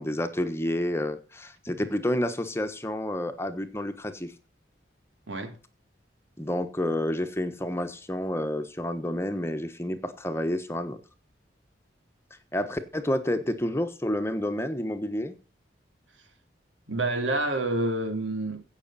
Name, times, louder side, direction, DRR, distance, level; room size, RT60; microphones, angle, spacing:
voice 1, 0.0-4.3 6.4-11.0 12.5-15.3, left 1 dB, 15° left, 1.2 m, -29 dB
voice 2, 16.9-18.6, right 2 dB, 90° right, 3.2 m, -28 dB
16.5 x 6.5 x 4.2 m
head